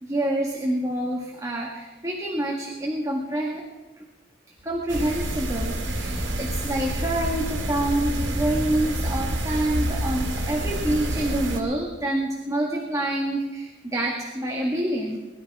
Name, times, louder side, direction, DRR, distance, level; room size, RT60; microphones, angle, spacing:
voice 1, 0.0-3.7 4.0-4.1 4.6-15.2, right 1 dB, 20° right, -1 dB, 1.9 m, -27 dB
sound 1, 4.6-9.6, left 1 dB, 40° right, 1.6 m, -47 dB
sound 2, 4.9-11.6, right 1 dB, 70° right, 2.5 m, -28 dB
21.5 x 12.5 x 4.9 m, 1.2 s
head